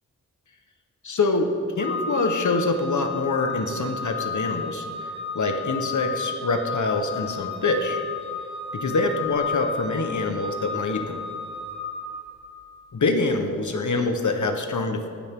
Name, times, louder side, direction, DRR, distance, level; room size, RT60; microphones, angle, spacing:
voice 1, 1.0-5.1 5.3-8.0 8.7-11.2 12.9-15.1, left 3 dB, 70° left, 5 dB, 1.3 m, -25 dB
Organ, 1.8-12.5, left 5 dB, 35° left, 2.4 m, -32 dB
19.0 x 10.5 x 3.8 m, 2.3 s
wide cardioid pair, 65°, 31 cm